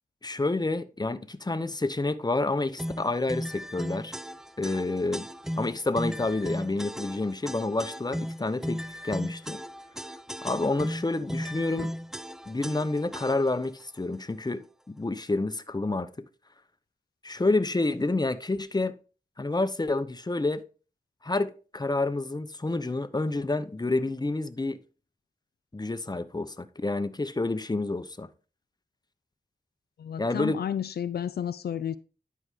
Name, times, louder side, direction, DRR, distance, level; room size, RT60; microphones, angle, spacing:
voice 1, 0.2-4.2 4.6-5.3 5.6-9.6 10.4-11.9 12.5-16.1 17.2-18.9 19.4-20.6 21.2-24.8 25.7-28.3 30.2-30.6, left 2 dB, 25° left, 0.9 m, -29 dB
sound 1, 2.8-13.7, equal, 5° right, 0.5 m, -36 dB
voice 2, 30.0-32.0, left 9 dB, 85° left, 0.4 m, -31 dB
11.0 x 4.8 x 3.7 m
cardioid pair, 40°, 16 cm